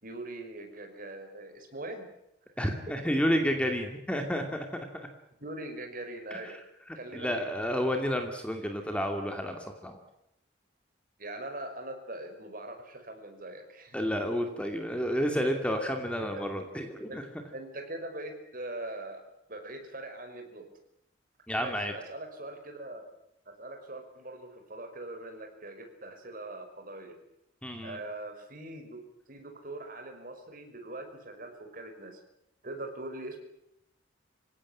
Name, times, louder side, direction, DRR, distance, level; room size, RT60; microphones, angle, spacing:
voice 1, 0.0-2.1 2.6-2.8 3.6-3.7 5.4-6.6 7.0-7.5 11.2-14.0 16.2-16.4 17.1-17.2 17.5-19.2 19.5-20.7 21.6-23.1 23.5-27.2 27.8-29.0 29.3-32.2 32.6-33.4, right 2 dB, 45° right, 5 dB, 5.6 m, -42 dB
voice 2, 2.6-4.9 6.3-6.5 6.9-10.0 13.9-17.2 21.5-21.9 27.6-28.0, equal, 5° left, 4 dB, 2.6 m, -30 dB
27.0 x 17.0 x 10.0 m, 0.81 s
head